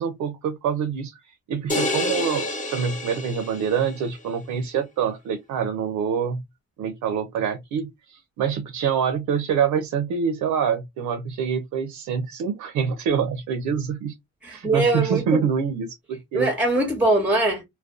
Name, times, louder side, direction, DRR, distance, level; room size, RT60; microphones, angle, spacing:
voice 1, 0.0-6.4 6.8-14.1 14.5-16.5, right 7 dB, 75° right, 0.5 m, -26 dB
sound 1, 1.7-4.0, left 1 dB, 25° left, 0.9 m, -28 dB
voice 2, 14.4-15.4 16.3-17.6, right 2 dB, 5° right, 0.7 m, -22 dB
2.4 x 2.2 x 2.4 m
cardioid pair, 90°, 30 cm